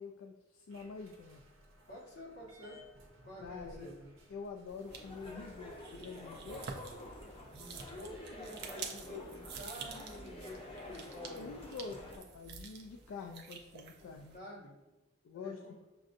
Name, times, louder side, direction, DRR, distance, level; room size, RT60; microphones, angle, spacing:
voice 1, 0.0-1.4 3.4-3.9 4.3-6.7 10.9-11.0 11.3-14.4 15.2-15.8, left 4 dB, 70° left, 3 dB, 0.3 m, -46 dB
sound 1, 0.7-7.8, equal, 75° right, 0.7 m, -61 dB
voice 2, 1.9-2.8 3.3-4.1 7.5-11.6 14.3-14.7 15.3-15.8, left 1 dB, 50° left, -5 dB, 1.3 m, -49 dB
sound 2, 4.7-14.4, right 5 dB, 50° right, 0.5 m, -49 dB
sound 3, 4.9-12.2, left 1 dB, 25° left, 0.6 m, -49 dB
6.2 x 2.5 x 2.5 m, 1.1 s
head